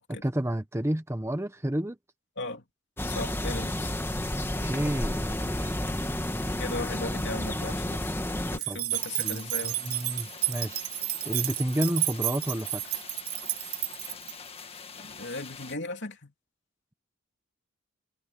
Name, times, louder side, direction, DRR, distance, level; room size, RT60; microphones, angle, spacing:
voice 1, 0.2-2.0 4.6-5.8 8.7-8.9 9.2-10.9 11.2-12.8, right 1 dB, 10° right, 0.9 m, -31 dB
sound 1, 3.0-8.6, left 1 dB, 10° left, 1.7 m, -31 dB
voice 2, 3.1-3.9 6.6-8.1 8.5-9.8 14.9-16.3, left 2 dB, 55° left, 3.2 m, -37 dB
sound 2, 8.6-14.3, right 16 dB, 90° right, 3.0 m, -31 dB
sound 3, 8.9-15.8, left 5 dB, 25° left, 1.7 m, -45 dB
head